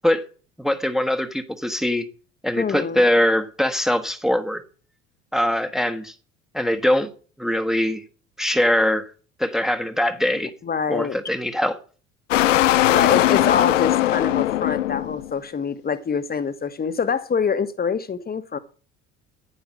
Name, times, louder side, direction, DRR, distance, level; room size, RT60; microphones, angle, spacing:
voice 1, 0.6-2.0 2.4-4.6 5.3-6.1 6.5-7.1 7.4-8.0 8.4-9.1 9.4-10.5 10.9-11.8, left 1 dB, ahead, 1.3 m, -22 dB
voice 2, 2.6-3.0 10.3-11.2 12.9-18.6, left 6 dB, 25° left, 1.3 m, -25 dB
sound 1, 12.3-15.3, left 14 dB, 75° left, 0.5 m, -19 dB
11.0 x 10.0 x 7.4 m
figure-of-eight pair, 60°, 38 cm